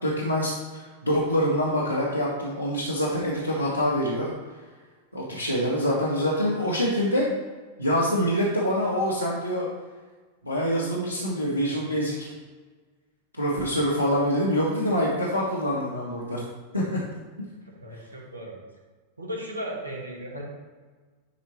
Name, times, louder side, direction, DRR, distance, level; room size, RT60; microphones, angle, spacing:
voice 1, 0.0-4.3 5.1-7.2 7.8-9.6 10.4-12.3 13.3-16.4 16.7-17.0, equal, 90° left, -6 dB, 1.5 m, -25 dB
voice 2, 17.8-18.6 19.2-20.4, equal, 85° right, -2 dB, 2.1 m, -36 dB
11.0 x 4.6 x 4.3 m, 1.4 s
figure-of-eight pair, 90°, 0 cm